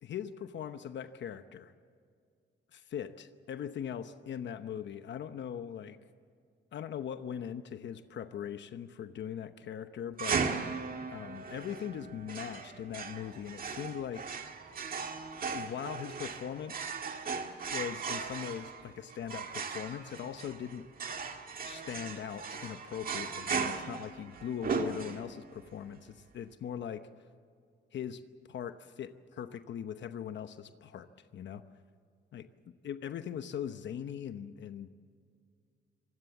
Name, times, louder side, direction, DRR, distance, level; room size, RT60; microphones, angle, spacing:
voice 1, 0.0-1.7 2.7-6.0 6.7-10.4 11.1-14.4 15.5-17.0 17.7-20.9 21.7-27.1 27.9-28.2 28.5-31.1 31.3-31.6 32.3-32.5 32.8-34.9, left 9 dB, 70° left, 10 dB, 1.0 m, -40 dB
sound 1, 10.2-25.5, right 5 dB, 50° right, 1.9 m, -37 dB
25.0 x 19.0 x 7.2 m, 2.2 s
cardioid pair, 130°, 19 cm